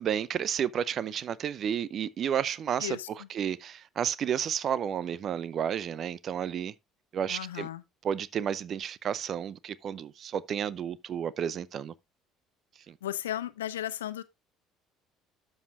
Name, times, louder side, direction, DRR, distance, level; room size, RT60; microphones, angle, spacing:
voice 1, 0.0-6.7 7.1-7.7 8.0-11.9 12.9-13.0, right 8 dB, 45° right, 0.6 m, -31 dB
voice 2, 7.3-7.8 13.0-14.2, left 12 dB, 75° left, 0.7 m, -35 dB
12.5 x 6.4 x 2.4 m
figure-of-eight pair, 55°, 0 cm